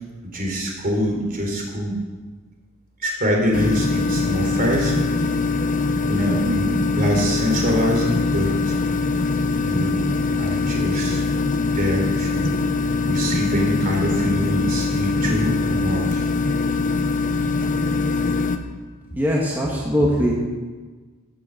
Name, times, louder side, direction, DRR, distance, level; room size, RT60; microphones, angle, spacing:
voice 1, 0.3-2.0 3.0-5.2 6.0-8.7 9.5-10.1 10.4-11.2 11.6-12.6 13.1-16.2, equal, 40° right, 0 dB, 4.0 m, -24 dB
sound 1, 3.5-18.6, left 3 dB, 35° left, 1.0 m, -22 dB
voice 2, 19.1-20.3, equal, 10° right, -4 dB, 2.1 m, -20 dB
16.5 x 8.8 x 8.0 m, 1.4 s
head